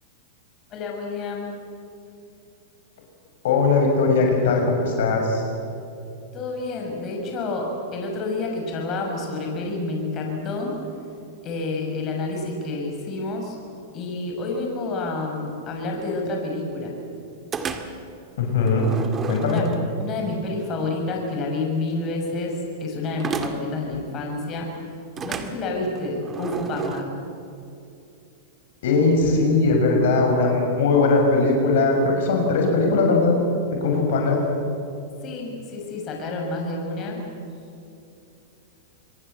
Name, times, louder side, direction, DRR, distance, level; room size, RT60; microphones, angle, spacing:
voice 1, 0.7-1.5 6.3-10.7 11.4-13.5 13.9-17.0 19.4-19.7 20.0-24.7 25.2-27.1 35.2-37.2, left 2 dB, 35° left, 1 dB, 6.2 m, -29 dB
voice 2, 3.4-5.4 18.4-18.9 19.3-19.6 28.8-33.4 33.7-34.4, left 3 dB, 70° left, 1 dB, 6.1 m, -19 dB
sound 1, 17.5-18.1 18.7-20.2 23.2-23.8 25.2-27.0, right 5 dB, 25° right, 2.1 m, -32 dB
26.5 x 22.0 x 8.0 m, 2.7 s
hypercardioid pair, 120°, 0 cm